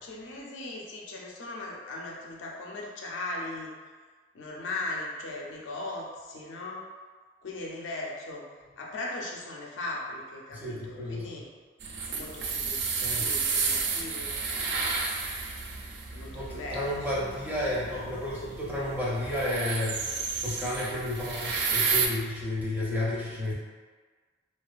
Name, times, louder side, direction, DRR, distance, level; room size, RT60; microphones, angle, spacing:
voice 1, 0.0-3.7 4.3-6.8 7.4-8.4 8.8-11.5 12.1-12.8 13.1-14.6 16.1-17.1, left 2 dB, 80° left, -2 dB, 0.5 m, -38 dB
voice 2, 10.5-11.3 13.0-13.3 16.3-20.1 20.4-23.5, left 1 dB, 10° right, -7 dB, 0.5 m, -32 dB
sound 1, 11.8-22.1, right 4 dB, 65° right, 0.3 m, -32 dB
2.4 x 2.2 x 2.4 m, 1.5 s
head